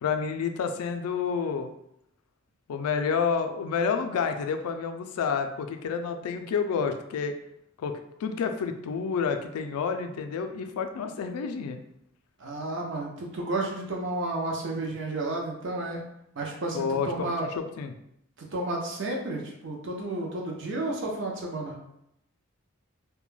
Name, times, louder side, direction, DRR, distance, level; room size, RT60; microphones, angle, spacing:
voice 1, 0.0-1.7 2.7-7.4 7.8-11.8 16.7-17.9, left 6 dB, 90° left, 8 dB, 0.3 m, -29 dB
voice 2, 12.4-16.0 16.4-17.5 18.4-21.7, right 2 dB, 55° right, -1 dB, 0.5 m, -32 dB
2.2 x 2.1 x 3.1 m, 0.78 s
head